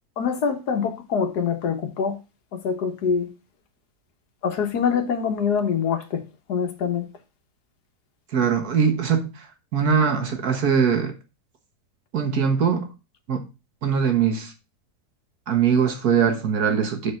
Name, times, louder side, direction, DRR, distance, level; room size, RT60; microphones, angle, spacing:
voice 1, 0.2-2.2 2.5-3.3 4.4-6.2 6.5-7.1, left 6 dB, 80° left, 1.7 m, -24 dB
voice 2, 8.3-9.3 9.7-11.1 12.1-12.9 13.3-13.4 13.8-14.5 15.5-17.1, right 7 dB, 70° right, 1.8 m, -21 dB
6.7 x 4.5 x 5.7 m
omnidirectional pair, 1.7 m